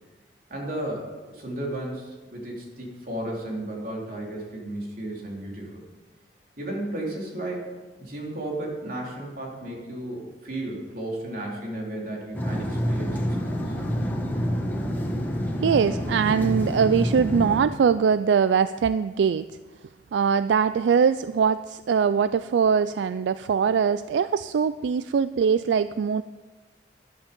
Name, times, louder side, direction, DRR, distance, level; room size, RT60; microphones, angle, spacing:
voice 1, 0.5-5.8 6.6-7.7 8.0-13.8, right 1 dB, 55° right, -2 dB, 3.4 m, -34 dB
sound 1, 12.3-17.6, equal, 10° left, 1.7 m, -27 dB
voice 2, 15.6-19.4 20.1-26.2, right 6 dB, 85° right, 14 dB, 0.3 m, -22 dB
12.5 x 11.5 x 5.3 m, 1.2 s
head